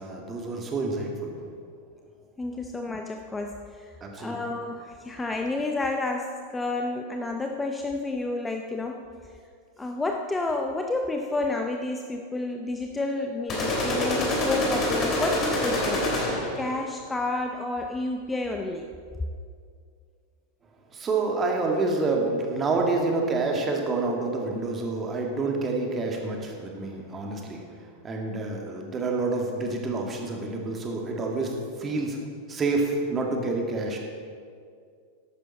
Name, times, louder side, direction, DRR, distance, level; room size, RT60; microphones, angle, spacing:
voice 1, 0.0-1.3 4.0-4.4 20.9-27.6 28.0-32.2 32.5-34.0, right 3 dB, 20° right, 1 dB, 2.1 m, -28 dB
voice 2, 2.4-9.1 9.8-16.1 16.6-18.9, left 2 dB, 10° left, 4 dB, 0.7 m, -30 dB
sound 1, 13.5-16.6, left 1 dB, 30° left, 3.1 m, -26 dB
14.0 x 11.5 x 4.2 m, 2.2 s
figure-of-eight pair, 90°, 0 cm